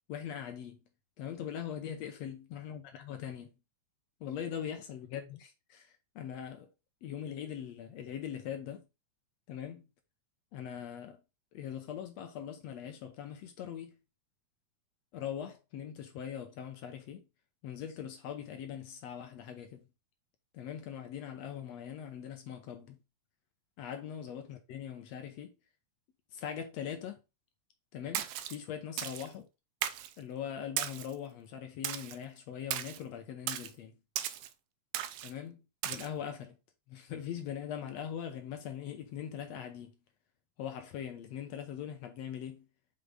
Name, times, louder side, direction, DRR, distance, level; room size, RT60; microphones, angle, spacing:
voice 1, 0.1-0.8 1.2-3.5 4.2-6.7 7.0-8.8 9.5-9.9 10.5-11.2 11.5-14.0 15.1-17.3 17.6-19.9 20.5-23.0 23.8-25.5 26.3-27.2 27.9-29.5 30.2-33.9 35.2-36.6 36.9-40.0 40.6-42.7, left 9 dB, 70° left, 1.8 m, -41 dB
Splash splatter, 28.1-28.6 29.0-29.3 29.8-30.1 30.8-31.1 31.8-32.2 32.7-33.0 33.5-33.7 34.2-34.5 34.9-35.3 35.8-36.1, right 11 dB, 90° right, 1.4 m, -36 dB
5.3 x 5.3 x 3.6 m
omnidirectional pair, 3.5 m